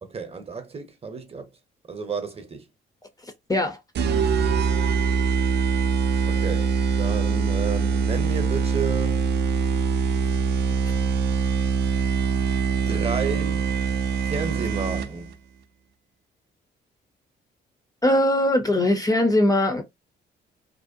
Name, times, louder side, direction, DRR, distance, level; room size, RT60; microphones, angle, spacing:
voice 1, 0.0-1.5 1.9-2.7 6.3-9.3 12.7-13.8 14.2-15.3, right 5 dB, 30° right, 0.7 m, -32 dB
sound 1, 4.0-15.3, right 5 dB, 60° right, 0.5 m, -23 dB
voice 2, 18.0-19.8, left 1 dB, 20° left, 0.5 m, -20 dB
2.6 x 2.0 x 2.5 m
cardioid pair, 90°, 20 cm